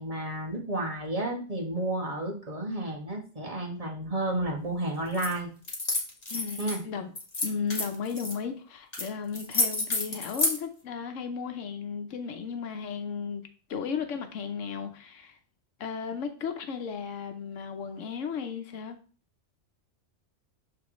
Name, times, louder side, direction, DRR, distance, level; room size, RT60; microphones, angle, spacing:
voice 1, 0.0-5.5 6.6-6.8, right 1 dB, 30° right, 1.7 m, -31 dB
sound 1, 5.1-5.3 5.6-6.8 7.2-8.3 8.9-9.1 9.3-10.6, left 2 dB, 35° left, 1.5 m, -29 dB
voice 2, 6.3-7.1 7.4-13.4 13.7-15.4 15.8-19.0, left 6 dB, 85° left, 1.1 m, -35 dB
11.5 x 3.8 x 3.1 m
omnidirectional pair, 1.3 m